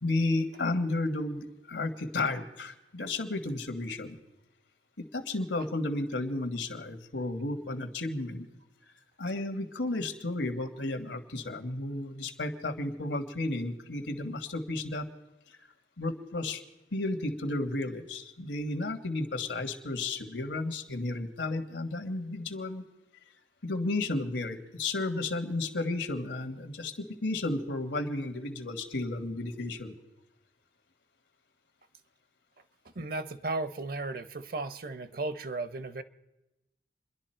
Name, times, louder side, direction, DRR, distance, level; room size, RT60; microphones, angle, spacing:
voice 1, 0.0-4.2 5.0-8.5 9.2-15.0 15.5-15.7 16.0-16.6 16.9-22.8 23.6-29.9, left 2 dB, 85° left, 7 dB, 1.5 m, -33 dB
voice 2, 33.0-36.0, right 3 dB, 55° right, 13 dB, 0.7 m, -35 dB
28.0 x 11.0 x 4.4 m, 1.0 s
head